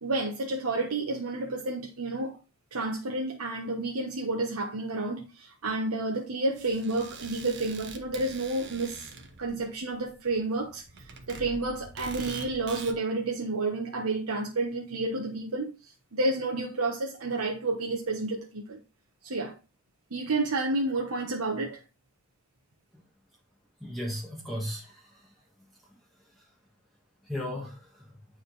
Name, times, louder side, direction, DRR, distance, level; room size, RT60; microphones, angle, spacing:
voice 1, 0.0-2.4 2.7-9.1 9.4-15.7 16.1-18.8 19.2-19.6 20.1-21.8, right 2 dB, 75° right, 1.0 m, -30 dB
sound 1, 6.6-12.9, right 4 dB, 55° right, 1.0 m, -45 dB
voice 2, 23.8-25.3 26.4-26.5 27.2-28.1, left 1 dB, ahead, 1.5 m, -36 dB
9.2 x 3.7 x 3.8 m
head